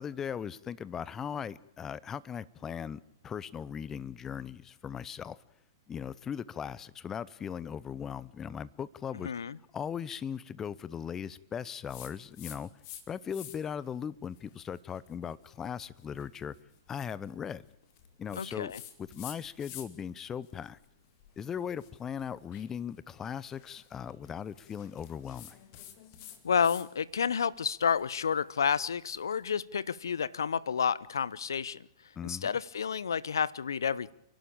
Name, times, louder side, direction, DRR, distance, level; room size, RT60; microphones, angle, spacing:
voice 1, 0.0-5.4 5.9-9.3 9.7-12.7 13.1-16.5 16.9-17.6 18.2-18.7 19.0-20.8 21.4-25.6 32.2-32.5, left 8 dB, 20° left, 20 dB, 0.8 m, -38 dB
voice 2, 9.2-9.6 18.3-18.8 26.4-31.9 32.2-34.1, left 7 dB, 75° left, 22 dB, 0.7 m, -30 dB
sound 1, 11.9-13.0 13.3-13.8 14.3-20.1 20.4-26.9 27.2-29.4, left 11 dB, 45° left, 2.5 m, -51 dB
29.0 x 11.5 x 8.8 m, 0.77 s
hypercardioid pair, 110°, 2 cm